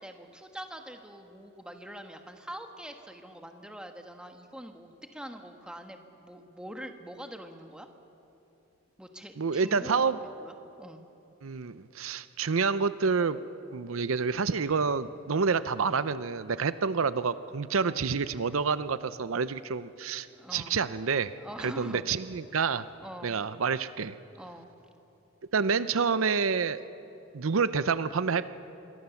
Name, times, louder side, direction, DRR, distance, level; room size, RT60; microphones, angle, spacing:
voice 1, 0.0-7.9 9.0-11.0 20.3-20.8 21.4-22.1 23.0-23.4 24.4-24.7, equal, 5° right, 5 dB, 1.4 m, -44 dB
voice 2, 9.4-10.2 11.4-13.4 13.7-20.3 20.5-21.3 21.6-22.8 23.2-24.1 25.5-26.8 27.3-28.5, right 5 dB, 80° right, 14 dB, 0.6 m, -28 dB
26.5 x 22.5 x 7.1 m, 2.9 s
head